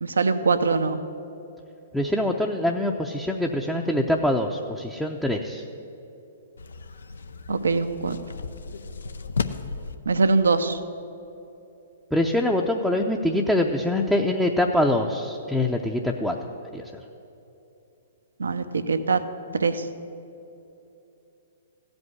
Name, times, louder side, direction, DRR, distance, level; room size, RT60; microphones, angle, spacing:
voice 1, 0.0-1.0 7.5-8.2 10.1-10.8 18.4-19.2 19.6-19.8, right 4 dB, 85° right, 10 dB, 0.7 m, -22 dB
voice 2, 1.9-5.6 12.1-16.4 16.7-16.8, left 1 dB, ahead, 0 dB, 0.6 m, -24 dB
sound 1, 6.6-10.0, left 4 dB, 80° left, 0.6 m, -34 dB
15.0 x 5.3 x 9.6 m, 2.8 s
hypercardioid pair, 125°, 0 cm